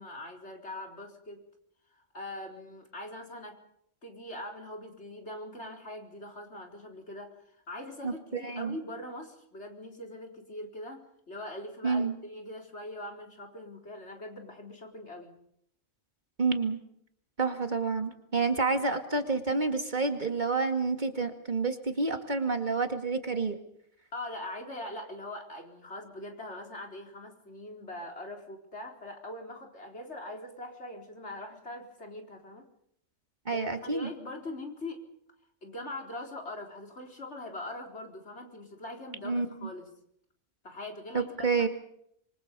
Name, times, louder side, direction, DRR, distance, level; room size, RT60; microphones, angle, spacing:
voice 1, 0.0-1.4 1.9-3.6 4.0-15.4 24.1-32.7 33.5-35.0 35.6-39.9 40.6-41.5, left 1 dB, 65° left, 2 dB, 4.5 m, -42 dB
voice 2, 8.0-8.8 11.8-12.2 16.4-16.8 17.4-23.6 33.5-34.1 39.2-39.7 41.1-41.7, right 4 dB, 40° right, 6 dB, 2.2 m, -29 dB
27.0 x 24.0 x 5.4 m, 0.72 s
omnidirectional pair, 1.3 m